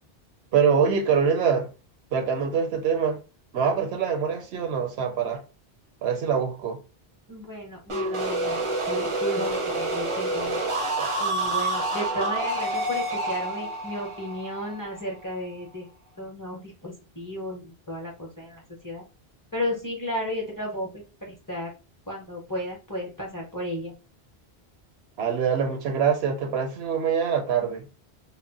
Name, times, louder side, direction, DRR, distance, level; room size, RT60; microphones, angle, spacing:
voice 1, 0.5-1.7 2.1-3.2 3.5-5.4 6.0-6.8 11.0-11.1 25.2-27.9, right 6 dB, 80° right, 0.9 m, -24 dB
voice 2, 7.3-10.6 11.2-15.9 16.2-19.0 19.5-21.7 22.1-23.9, equal, 25° left, 0.6 m, -33 dB
sound 1, 7.9-15.6, right 2 dB, 40° right, 0.5 m, -28 dB
2.1 x 2.0 x 3.7 m
omnidirectional pair, 1.1 m